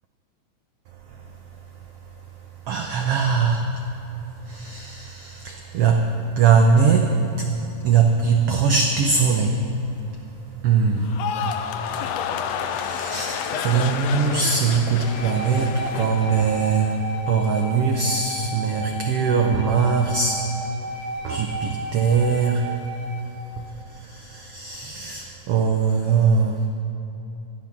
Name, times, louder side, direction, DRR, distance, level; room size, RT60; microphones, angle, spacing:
voice 1, 2.7-3.7 4.4-7.5 7.8-9.6 10.6-11.1 12.6-17.0 17.3-20.4 21.2-22.7 23.6-26.6, right 5 dB, 90° right, 3 dB, 1.3 m, -21 dB
sound 1, 11.0-17.3 17.6-18.1, left 8 dB, 90° left, 1.5 m, -30 dB
sound 2, 15.0-23.2, right 1 dB, 30° left, 1.5 m, -33 dB
13.5 x 12.0 x 6.0 m, 2.9 s
omnidirectional pair, 3.7 m